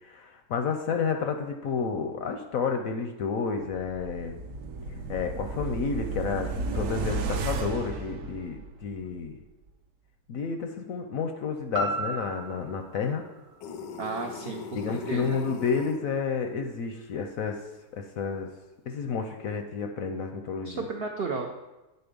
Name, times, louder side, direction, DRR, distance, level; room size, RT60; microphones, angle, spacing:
voice 1, 0.0-4.4 5.1-9.4 10.3-13.2 14.7-17.6 17.9-18.5 18.9-20.8, left 5 dB, 65° left, 5 dB, 0.9 m, -31 dB
sound 1, 3.7-9.0 9.3-9.4, right 3 dB, 60° right, 0.9 m, -33 dB
sound 2, 11.7-15.8 16.3-16.4, right 1 dB, 45° right, 1.1 m, -36 dB
sound 3, 13.6-16.0, left 6 dB, 80° left, 1.2 m, -39 dB
voice 2, 14.0-15.4 20.6-21.5, right 4 dB, 80° right, 2 dB, 0.5 m, -33 dB
9.4 x 4.0 x 5.2 m, 1.1 s
omnidirectional pair, 1.9 m